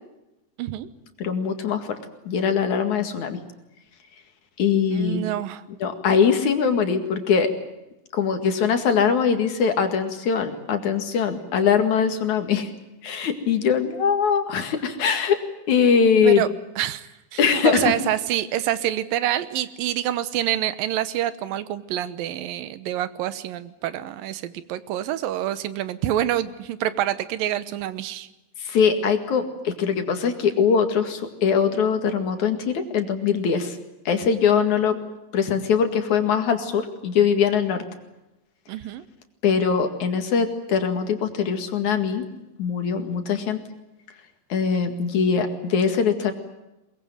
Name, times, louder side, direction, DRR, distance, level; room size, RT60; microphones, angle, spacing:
voice 1, 0.6-0.9 4.9-5.6 16.2-16.5 16.8-28.3 38.7-39.0, right 12 dB, 85° right, 14 dB, 2.8 m, -27 dB
voice 2, 1.2-1.9 2.3-3.4 4.6-5.3 5.8-7.5 8.1-12.7 13.0-15.4 15.7-16.4 17.4-17.9 28.6-33.8 34.1-35.0 35.3-37.8 39.4-42.2 42.6-43.6 44.5-46.3, left 6 dB, 60° left, 6 dB, 3.3 m, -22 dB
22.5 x 22.0 x 9.1 m, 0.95 s
omnidirectional pair, 4.0 m